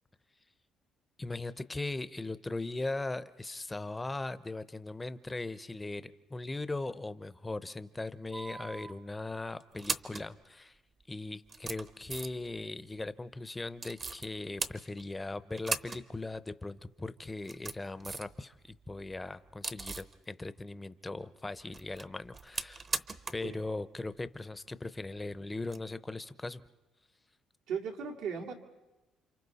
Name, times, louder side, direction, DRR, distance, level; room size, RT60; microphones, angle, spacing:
voice 1, 1.2-10.8 11.1-22.8 23.3-26.6, left 2 dB, 15° left, 14 dB, 0.7 m, -39 dB
sound 1, 8.3-8.9 9.6-10.3 11.0-11.1 11.5-12.5 13.8-14.3 14.6-15.2 15.6-16.0 16.3-16.4 17.3-18.4 18.7-20.1 21.5-23.5 23.8-23.9 25.6-25.8, right 4 dB, 30° right, 0.8 m, -39 dB
voice 2, 27.7-28.5, right 6 dB, 90° right, 1 dB, 2.3 m, -36 dB
29.5 x 26.5 x 4.1 m, 1.1 s
cardioid pair, 115°, 0 cm